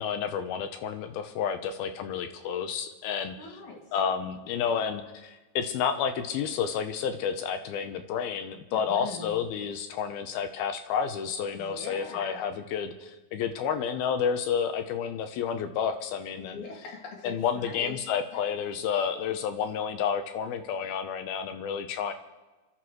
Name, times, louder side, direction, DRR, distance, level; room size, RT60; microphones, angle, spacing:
voice 1, 0.0-3.4 3.9-16.6 17.2-22.1, left 7 dB, 80° left, 8 dB, 2.5 m, -30 dB
voice 2, 3.4-3.8 8.7-9.3 11.5-12.4 16.4-18.0 18.3-18.4, left 4 dB, 50° left, -1 dB, 3.2 m, -42 dB
30.0 x 11.5 x 3.1 m, 1.2 s
omnidirectional pair, 4.7 m